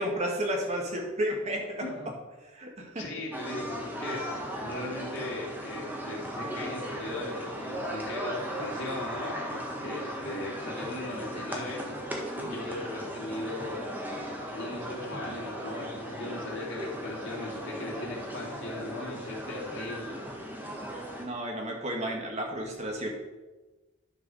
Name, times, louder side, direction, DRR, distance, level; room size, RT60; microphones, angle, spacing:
voice 1, 0.0-1.9 2.5-3.0 21.2-23.1, equal, 30° right, 1 dB, 1.9 m, -32 dB
voice 2, 1.8-2.1 3.0-9.3 9.8-11.8 12.3-13.9 14.5-20.2, left 2 dB, 65° left, -4 dB, 3.1 m, -38 dB
sound 1, 3.3-21.3, equal, 10° right, 1.4 m, -37 dB
11.0 x 4.9 x 6.4 m, 1.2 s
head